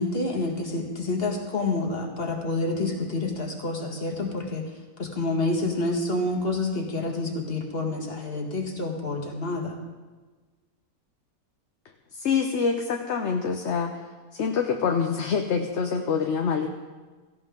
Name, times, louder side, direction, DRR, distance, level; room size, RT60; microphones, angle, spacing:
voice 1, 0.0-4.6 5.0-9.8, left 2 dB, 40° left, 2 dB, 2.0 m, -28 dB
voice 2, 12.2-14.0 14.3-16.7, left 6 dB, 55° left, 4 dB, 1.0 m, -25 dB
17.5 x 15.0 x 3.7 m, 1.3 s
omnidirectional pair, 1.6 m